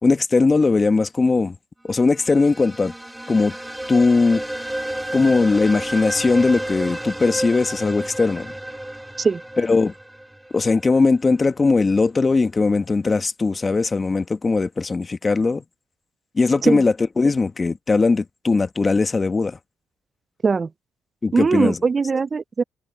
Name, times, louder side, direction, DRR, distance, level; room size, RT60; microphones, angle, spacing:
voice 1, 0.0-1.6 1.8-2.9 3.3-3.5 3.9-4.4 5.1-8.5 9.6-9.9 10.5-15.6 16.3-19.6 21.2-21.8, left 3 dB, 30° left, 1.3 m, -19 dB
sound 1, 2.0-10.9, right 1 dB, 5° right, 2.7 m, -31 dB
voice 2, 21.3-22.6, right 5 dB, 35° right, 0.4 m, -20 dB
cardioid pair, 90°, 0 cm